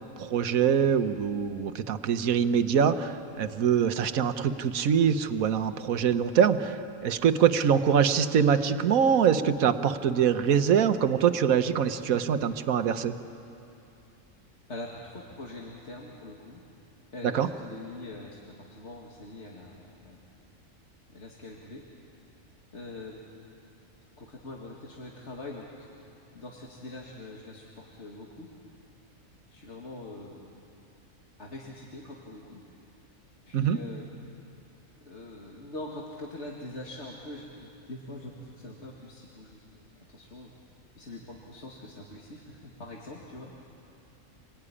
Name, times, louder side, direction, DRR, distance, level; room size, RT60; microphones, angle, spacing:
voice 1, 0.2-13.2 17.2-17.5 33.5-33.8, right 7 dB, 85° right, 10 dB, 1.4 m, -24 dB
voice 2, 14.7-16.6 17.1-20.2 21.1-21.8 22.7-23.2 24.2-25.9 26.3-28.5 29.5-30.4 31.4-32.8 33.5-34.1 35.0-40.5 41.0-43.7, left 2 dB, 55° left, -2 dB, 2.4 m, -43 dB
27.0 x 21.0 x 9.9 m, 2.7 s
omnidirectional pair, 1.4 m